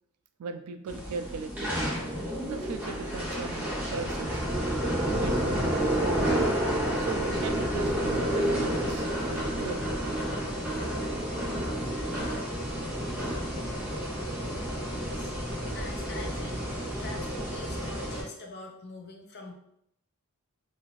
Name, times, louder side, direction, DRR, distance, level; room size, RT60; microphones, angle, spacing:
voice 1, 0.4-1.9 2.4-4.4 5.1-5.7 7.0-9.9 15.7-15.8, right 5 dB, 90° right, 8 dB, 0.3 m, -38 dB
sound 1, 0.9-18.2, right 1 dB, 5° right, 0.6 m, -30 dB
voice 2, 15.0-15.3 15.7-16.7 17.0-19.5, left 2 dB, 50° left, 1 dB, 0.5 m, -44 dB
2.6 x 2.4 x 3.0 m, 0.76 s
head